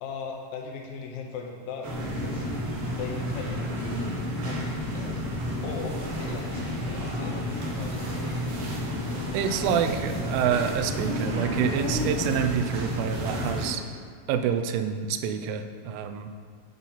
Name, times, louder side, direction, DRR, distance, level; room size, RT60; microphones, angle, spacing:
voice 1, 0.0-2.5 3.0-5.2 5.6-8.5, left 4 dB, 80° left, 0 dB, 3.1 m, -39 dB
sound 1, 1.8-13.7, equal, 65° right, 2.4 m, -31 dB
voice 2, 9.3-13.8 14.3-16.3, right 8 dB, 85° right, 7 dB, 3.0 m, -27 dB
8.8 x 4.0 x 5.6 m, 2.1 s
omnidirectional pair, 5.5 m